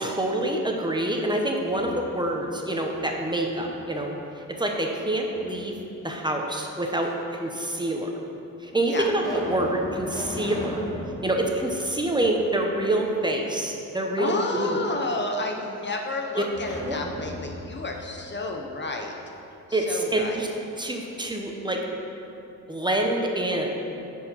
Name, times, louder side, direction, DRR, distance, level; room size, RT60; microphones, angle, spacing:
voice 1, 0.0-4.1 4.6-5.7 6.0-8.1 8.6-10.7 11.2-14.9 16.9-17.0 19.7-20.5 20.8-21.8 22.7-23.8, right 1 dB, 15° right, 1 dB, 1.0 m, -26 dB
sound 1, 1.5-2.4 2.8-4.1 5.3-6.1 7.0-7.1 8.0-8.1 8.7-12.8 13.1-13.2 16.5-19.3, left 1 dB, 10° left, 1.8 m, -38 dB
voice 2, 14.2-19.1 19.7-20.4, left 2 dB, 35° left, 2 dB, 0.8 m, -31 dB
10.0 x 4.7 x 5.7 m, 2.8 s
cardioid pair, 95°, 32 cm